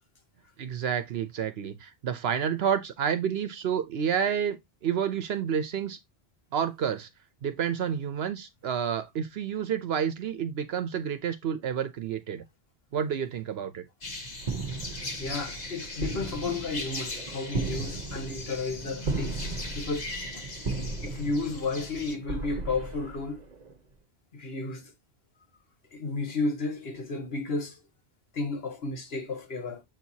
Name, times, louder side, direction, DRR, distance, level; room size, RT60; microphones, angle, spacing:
voice 1, 0.6-4.6 4.8-6.0 6.5-7.1 7.4-12.4 12.9-13.8, right 8 dB, 70° right, 0.9 m, -29 dB
sound 1, 14.0-22.2, left 2 dB, 40° left, 1.4 m, -39 dB
sound 2, 14.4-23.7, right 3 dB, 45° right, 0.9 m, -36 dB
voice 2, 15.2-19.4 19.7-20.4 21.0-23.4 24.3-24.9 25.9-27.8 28.3-29.8, left 3 dB, 65° left, 1.8 m, -33 dB
7.5 x 4.5 x 2.8 m
omnidirectional pair, 1.1 m